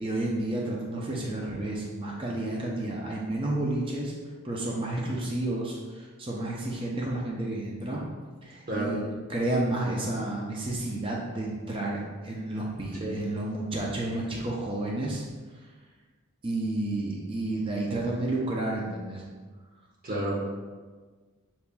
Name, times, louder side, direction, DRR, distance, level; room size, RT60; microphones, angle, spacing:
voice 1, 0.0-4.1 4.4-8.0 8.4-15.2 15.5-15.7 16.4-19.2, right 2 dB, 25° right, -3 dB, 0.5 m, -31 dB
voice 2, 8.7-9.0 13.0-13.2 20.0-20.5, right 1 dB, 40° right, -4 dB, 1.0 m, -30 dB
6.8 x 2.9 x 2.2 m, 1.4 s
head